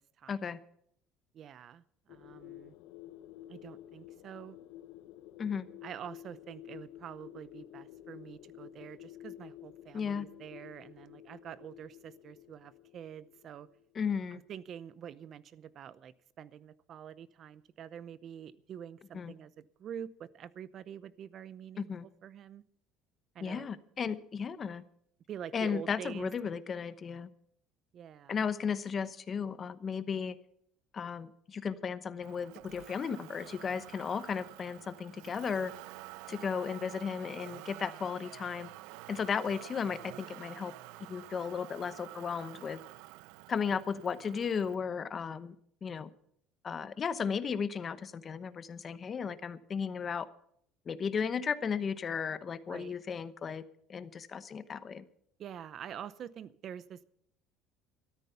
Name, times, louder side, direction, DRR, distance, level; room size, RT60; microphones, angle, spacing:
voice 1, 0.3-0.6 5.4-5.6 9.9-10.3 13.9-14.4 19.1-19.3 21.8-22.1 23.4-24.8 25.5-27.3 28.3-30.3 30.9-35.7 36.3-38.7 39.1-40.7 41.0-42.8 43.5-45.5 45.8-46.1 46.6-50.3 50.9-53.6 53.9-55.1, left 6 dB, 30° left, 14 dB, 0.9 m, -35 dB
voice 2, 1.3-2.7 3.5-4.6 5.8-13.7 14.3-21.9 22.2-22.6 23.3-23.7 25.3-26.3 27.9-28.4 52.7-52.9 55.4-57.1, right 9 dB, 45° right, 18 dB, 0.7 m, -46 dB
sound 1, 2.1-13.9, left 13 dB, 75° left, 0.7 m, -51 dB
Motor vehicle (road), 32.2-44.8, right 18 dB, 85° right, 0.5 m, -49 dB
13.5 x 13.0 x 5.7 m, 0.68 s
cardioid pair, 135°, 0 cm